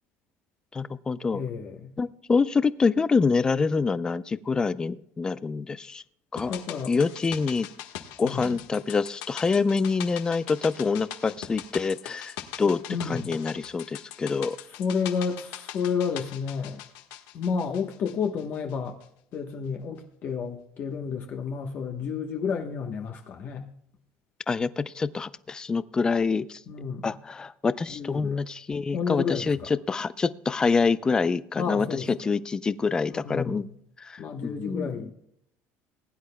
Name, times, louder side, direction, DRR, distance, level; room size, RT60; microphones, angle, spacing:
voice 1, 0.7-1.4 2.0-6.0 6.3-6.5 6.9-7.7 8.2-14.6 24.5-26.6 27.0-33.7 34.0-34.9, left 4 dB, 15° left, 16 dB, 0.4 m, -26 dB
voice 2, 1.3-1.9 6.5-6.9 8.2-8.5 12.9-13.3 14.7-16.8 17.3-19.0 19.3-23.7 26.7-27.1 27.9-28.4 28.9-29.7 31.6-32.1 33.1-33.7 34.2-35.1, left 6 dB, 35° left, 3 dB, 1.0 m, -31 dB
sound 1, 6.4-18.7 19.0-19.1, left 12 dB, 90° left, 1.4 m, -41 dB
20.5 x 10.5 x 2.2 m, 0.74 s
cardioid pair, 165°, 5 cm